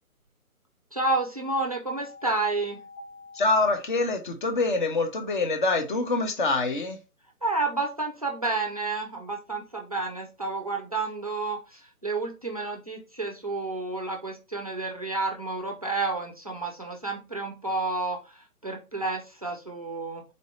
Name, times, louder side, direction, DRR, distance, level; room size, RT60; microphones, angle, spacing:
voice 1, 0.9-2.8 7.4-20.2, right 3 dB, 25° right, 0.4 m, -30 dB
sound 1, 1.9-3.5, left 1 dB, ahead, 0.8 m, -45 dB
voice 2, 3.3-7.0, left 3 dB, 35° left, 0.7 m, -25 dB
4.0 x 2.6 x 3.1 m
hypercardioid pair, 155°, 44 cm